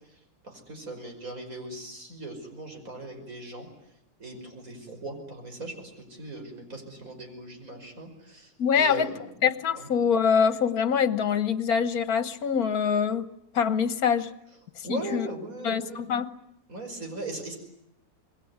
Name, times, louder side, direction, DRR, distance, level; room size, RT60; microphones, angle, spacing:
voice 1, 0.4-3.7 4.2-9.2 9.7-9.9 14.8-16.1 16.7-17.6, right 2 dB, 60° right, 5 dB, 5.8 m, -39 dB
voice 2, 8.6-9.1 9.4-13.3 13.5-14.3 14.9-15.3 15.6-16.3, left 7 dB, 70° left, 12 dB, 1.7 m, -24 dB
26.5 x 21.5 x 9.5 m, 0.78 s
omnidirectional pair, 1.6 m